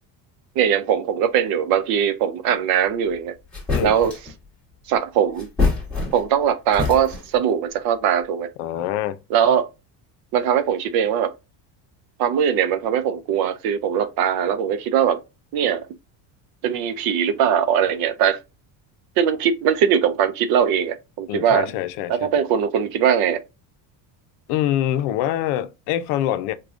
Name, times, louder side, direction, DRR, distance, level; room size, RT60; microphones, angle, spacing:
voice 1, 0.6-3.3 3.8-4.1 4.9-5.5 6.1-8.5 9.3-9.7 10.3-11.3 12.2-15.2 15.5-15.9 16.6-18.4 19.2-21.7 22.1-23.4, right 8 dB, 50° right, 0.5 m, -20 dB
sound 1, 3.1-3.2 3.5-4.3 5.3-6.4 6.7-7.4, left 4 dB, ahead, 1.3 m, -25 dB
voice 2, 8.6-9.2 21.3-22.3 24.5-26.5, left 12 dB, 80° left, 0.6 m, -25 dB
4.9 x 2.3 x 2.4 m
cardioid pair, 165°, 49 cm